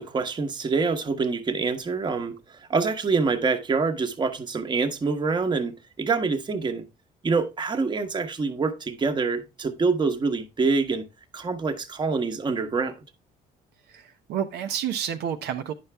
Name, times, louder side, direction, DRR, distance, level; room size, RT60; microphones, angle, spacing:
voice 1, 0.0-6.8 7.2-11.0 11.3-12.9, right 4 dB, 25° right, 1.0 m, -26 dB
voice 2, 13.9-15.7, right 9 dB, 80° right, 0.7 m, -30 dB
9.5 x 5.7 x 3.3 m
cardioid pair, 110°, 17 cm